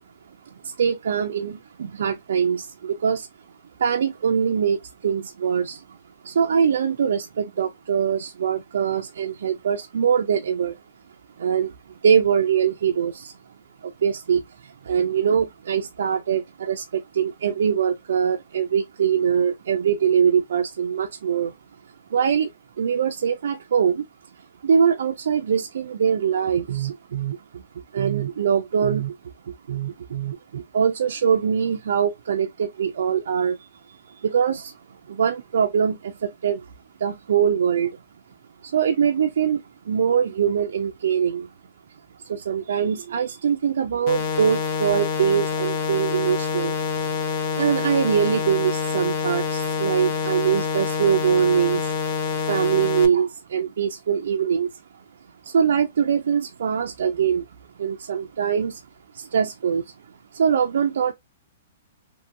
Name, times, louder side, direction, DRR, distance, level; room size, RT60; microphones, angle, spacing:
voice 1, 0.5-3.3 3.8-6.0 6.2-10.8 11.4-13.4 13.8-21.5 22.1-22.5 22.8-24.1 24.6-27.6 27.9-29.2 29.5-33.7 34.2-34.7 35.1-36.7 37.0-38.0 38.6-41.5 42.2-46.8 47.1-51.9 52.3-54.8 55.4-57.5 57.8-58.8 59.1-59.8 60.3-61.1, right 7 dB, 80° right, 0.3 m, -23 dB
sound 1, 44.1-53.1, left 6 dB, 40° left, 0.5 m, -26 dB
2.6 x 2.6 x 2.5 m
hypercardioid pair, 165°, 0 cm